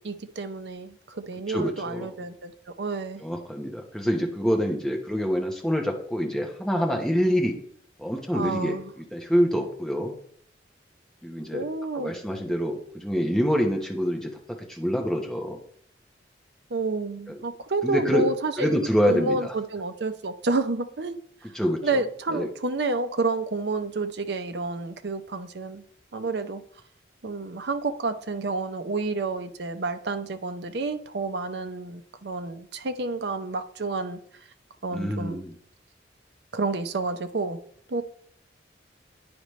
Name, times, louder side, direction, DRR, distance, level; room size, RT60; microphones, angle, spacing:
voice 1, 0.0-2.5 2.8-3.2 8.3-8.9 11.5-12.2 16.7-18.8 19.1-21.2 21.8-25.8 26.1-26.6 27.2-34.2 34.8-35.4 36.5-37.6 37.9-38.0, right 3 dB, 65° right, 8 dB, 0.7 m, -29 dB
voice 2, 1.5-2.1 3.2-7.6 8.0-10.1 11.2-11.6 11.9-14.3 14.7-15.6 17.3-17.4 17.8-18.3 18.6-19.5 21.5-22.0 22.3-22.5 34.9-35.5, equal, 5° left, 1 dB, 1.1 m, -26 dB
9.6 x 5.1 x 3.2 m, 0.63 s
head